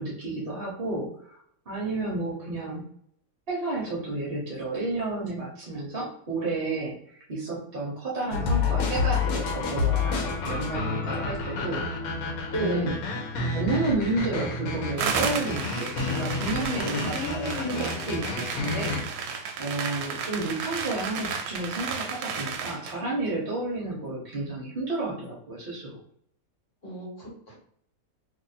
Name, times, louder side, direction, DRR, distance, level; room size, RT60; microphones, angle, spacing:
voice 1, 0.0-1.4 1.7-2.8 3.5-11.8 12.6-13.0 13.5-26.0, right 2 dB, 45° right, -3 dB, 0.9 m, -31 dB
sound 1, 8.3-19.0, left 4 dB, 75° left, 1.1 m, -29 dB
voice 2, 12.5-12.9 16.7-18.0 26.8-27.6, equal, 45° left, -3 dB, 1.5 m, -33 dB
sound 2, 15.0-23.0, right 6 dB, 75° right, 1.0 m, -33 dB
2.7 x 2.5 x 4.0 m, 0.66 s
omnidirectional pair, 1.6 m